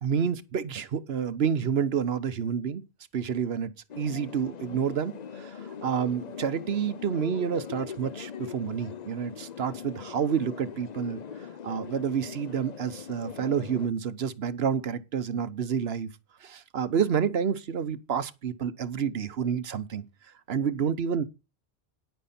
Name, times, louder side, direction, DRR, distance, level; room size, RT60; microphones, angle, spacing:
voice 1, 0.0-2.8 3.1-11.2 11.6-16.1 16.4-20.0 20.5-21.2, right 7 dB, 70° right, 1.1 m, -29 dB
sound 1, 3.9-13.9, left 7 dB, 45° left, 0.7 m, -41 dB
10.5 x 9.2 x 4.2 m
omnidirectional pair, 1.1 m